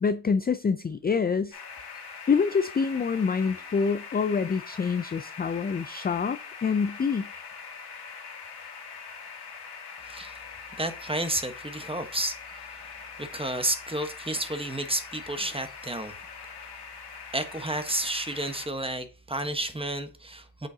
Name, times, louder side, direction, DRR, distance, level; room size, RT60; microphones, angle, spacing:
voice 1, 0.0-1.6 2.3-7.3, left 5 dB, 20° left, 0.4 m, -26 dB
sound 1, 1.5-18.7, left 5 dB, 65° left, 2.0 m, -43 dB
voice 2, 10.0-10.4 10.8-12.4 13.2-16.2 17.3-20.7, right 1 dB, 10° right, 1.2 m, -31 dB
8.0 x 6.3 x 2.8 m
cardioid pair, 60°, 44 cm